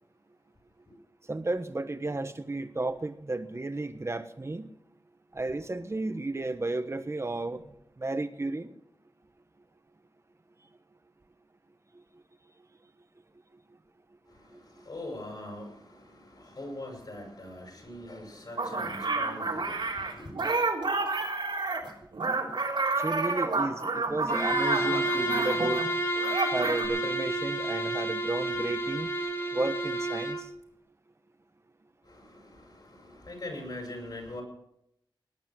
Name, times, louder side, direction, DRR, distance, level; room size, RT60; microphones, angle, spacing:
voice 1, 1.3-4.7 5.3-7.6 8.0-8.7 14.5-14.6 23.0-25.9 26.5-29.1 29.5-30.5, right 2 dB, 35° right, 1.3 m, -33 dB
voice 2, 14.3-20.3 32.0-34.4, left 1 dB, 55° left, 7.4 m, -42 dB
sound 1, 18.6-25.9 26.2-26.9, right 3 dB, 75° right, 3.8 m, -29 dB
Bowed string instrument, 24.3-30.5, right 1 dB, 35° left, 4.2 m, -30 dB
19.0 x 10.0 x 6.2 m
wide cardioid pair, 80°, 8 cm